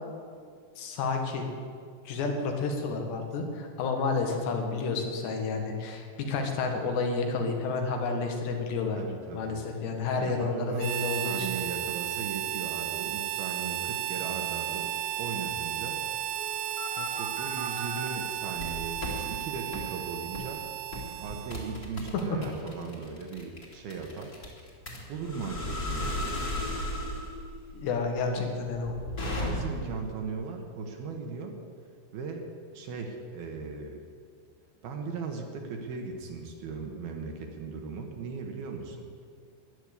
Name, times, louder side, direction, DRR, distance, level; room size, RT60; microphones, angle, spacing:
voice 1, 0.8-1.4 2.1-9.0 9.3-11.5 27.7-29.0, left 4 dB, 75° left, 3 dB, 3.9 m, -30 dB
voice 2, 9.0-9.6 10.2-14.9 15.2-16.0 16.9-20.6 21.2-24.4 25.1-26.6 28.2-28.5 29.4-31.6 32.1-34.0 34.8-39.1, right 4 dB, 70° right, 2 dB, 3.0 m, -38 dB
Harmonica, 10.8-21.9, right 15 dB, 85° right, 2.1 m, -34 dB
sound 1, 16.3-18.1 18.6-19.2 19.7-19.9 20.3-20.6 20.9-30.0, left 1 dB, 25° left, 2.3 m, -35 dB
14.5 x 11.0 x 8.3 m, 2.1 s
omnidirectional pair, 5.0 m